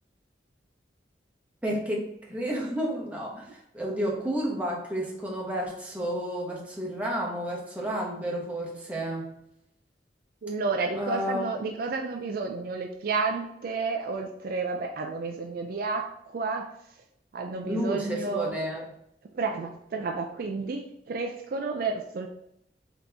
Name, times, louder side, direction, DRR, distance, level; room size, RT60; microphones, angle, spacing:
voice 1, 1.6-9.4 10.9-11.6 17.7-18.9, equal, 10° right, -3 dB, 0.9 m, -31 dB
voice 2, 10.4-16.7 17.3-18.6 19.3-22.3, right 4 dB, 55° right, 3 dB, 0.4 m, -31 dB
3.9 x 2.9 x 3.4 m, 0.77 s
head